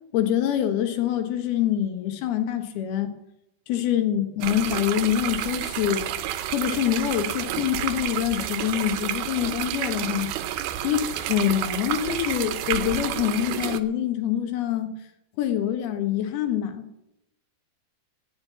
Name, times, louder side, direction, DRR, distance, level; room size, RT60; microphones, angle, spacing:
voice 1, 0.1-3.1 3.7-6.1 6.5-10.5 10.8-15.0 15.4-16.9, left 11 dB, 80° left, 7 dB, 3.4 m, -25 dB
sound 1, 4.4-13.8, right 12 dB, 80° right, 2.7 m, -30 dB
17.0 x 7.6 x 7.4 m, 0.87 s
omnidirectional pair, 4.4 m